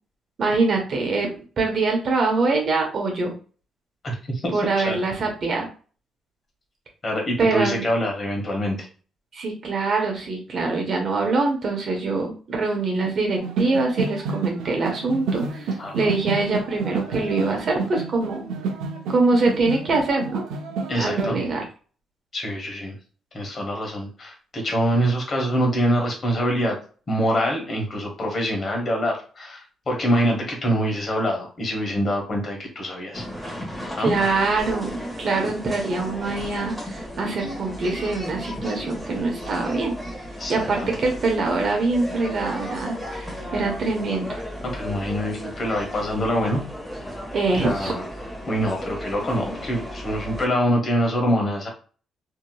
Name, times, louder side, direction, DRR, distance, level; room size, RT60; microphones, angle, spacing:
voice 1, 0.4-1.3 1.6-3.3 4.5-5.7 7.4-7.8 9.3-18.5 19.1-20.4 21.0-21.6 34.0-39.9 40.5-44.4 47.3-47.9, right 3 dB, 55° right, 1 dB, 0.9 m, -24 dB
voice 2, 4.0-4.6 4.8-5.0 7.0-8.9 15.8-16.1 20.9-21.4 22.3-22.9 23.3-26.8 27.1-33.3 33.9-34.1 40.4-40.9 44.7-46.6 47.5-48.0 48.5-51.7, equal, 40° left, 0 dB, 1.2 m, -25 dB
sound 1, 13.4-21.3, right 4 dB, 90° right, 0.5 m, -29 dB
sound 2, 33.1-50.5, equal, 5° left, 1.3 m, -35 dB
2.8 x 2.7 x 2.3 m, 0.39 s
cardioid pair, 90°, 0 cm